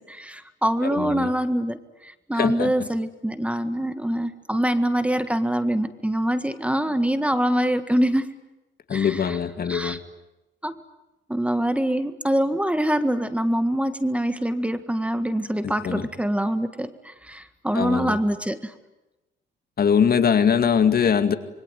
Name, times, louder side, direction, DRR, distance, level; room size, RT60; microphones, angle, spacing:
voice 1, 0.0-1.8 2.0-8.3 8.9-9.3 9.7-10.0 10.6-10.8 11.3-18.7, right 1 dB, 5° right, 11 dB, 1.7 m, -24 dB
voice 2, 0.8-1.3 2.3-2.7 8.9-10.0 15.6-16.1 17.7-18.2 19.8-21.3, left 7 dB, 50° left, 10 dB, 2.2 m, -22 dB
26.5 x 23.5 x 9.4 m, 0.99 s
cardioid pair, 90°, 20 cm